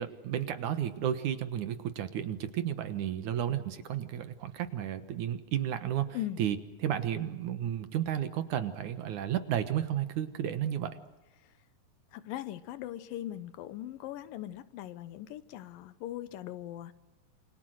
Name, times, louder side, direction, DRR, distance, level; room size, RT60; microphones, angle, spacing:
voice 1, 0.0-6.6 6.8-11.0, right 10 dB, 65° right, 10 dB, 2.6 m, -32 dB
voice 2, 12.1-16.9, left 13 dB, 85° left, 14 dB, 2.7 m, -40 dB
28.0 x 26.0 x 6.4 m, 1.0 s
omnidirectional pair, 3.9 m